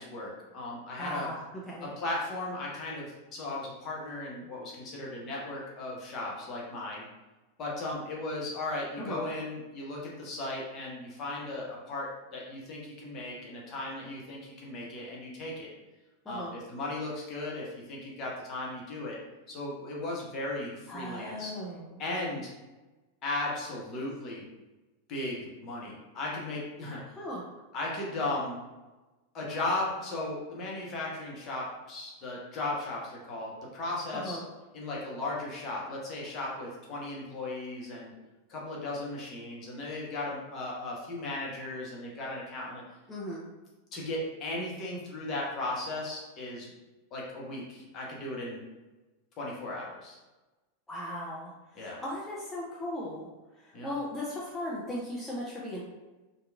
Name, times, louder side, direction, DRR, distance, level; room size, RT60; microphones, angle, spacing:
voice 1, 0.0-1.3 1.8-7.1 7.6-15.7 16.3-19.2 19.5-21.5 22.0-22.5 23.2-24.4 25.1-27.0 27.7-28.6 29.3-34.4 34.7-38.1 38.5-42.8 43.9-46.7 47.1-48.6 49.4-50.2 51.7-52.0 53.7-53.9, left 2 dB, 35° left, -3 dB, 0.8 m, -36 dB
voice 2, 1.0-1.4 1.7-1.9 9.0-9.3 16.3-16.5 20.9-22.0 27.2-27.4 34.1-34.4 43.1-43.5 50.9-53.3 53.5-55.8, left 1 dB, 10° left, -6 dB, 0.5 m, -37 dB
2.8 x 2.2 x 2.3 m, 1.1 s
figure-of-eight pair, 90°, 0 cm